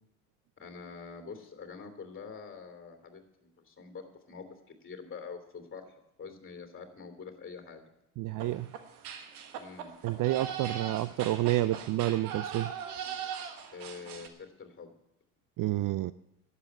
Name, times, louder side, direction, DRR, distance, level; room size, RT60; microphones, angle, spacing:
voice 1, 0.6-4.5 4.8-5.9 6.2-7.9 9.5-9.9 13.7-14.9, left 5 dB, 25° left, 6 dB, 3.0 m, -45 dB
voice 2, 8.2-8.7 10.0-12.7 15.6-16.1, right 15 dB, 45° right, 16 dB, 0.5 m, -29 dB
sound 1, 8.4-14.3, right 8 dB, 90° right, 1.5 m, -40 dB
11.5 x 8.5 x 9.1 m, 0.85 s
hypercardioid pair, 75°, 44 cm